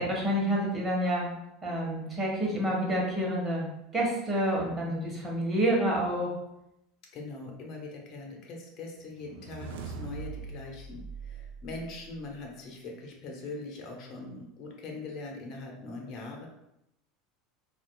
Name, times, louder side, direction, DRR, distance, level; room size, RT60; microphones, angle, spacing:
voice 1, 0.0-1.3 1.6-6.3, right 1 dB, 25° right, -2 dB, 1.2 m, -28 dB
voice 2, 7.1-16.5, left 3 dB, 50° left, 0 dB, 1.0 m, -42 dB
sound 1, 9.1-12.4, right 5 dB, 75° right, 0.4 m, -42 dB
4.2 x 2.5 x 2.2 m, 0.84 s
hypercardioid pair, 95°, 0 cm